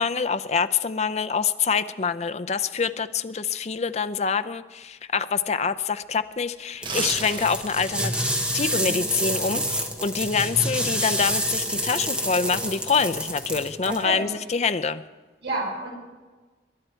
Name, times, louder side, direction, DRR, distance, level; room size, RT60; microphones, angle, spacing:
voice 1, 0.0-8.1 8.5-15.0, left 5 dB, 40° left, 12 dB, 0.5 m, -25 dB
sound 1, 6.7-7.9 8.3-8.4, right 4 dB, 30° right, 1.1 m, -30 dB
sound 2, 6.8-14.0, right 1 dB, 5° right, 1.2 m, -28 dB
voice 2, 13.8-14.3 15.4-15.9, right 1 dB, 75° right, -2 dB, 5.3 m, -30 dB
22.0 x 11.0 x 4.5 m, 1.3 s
head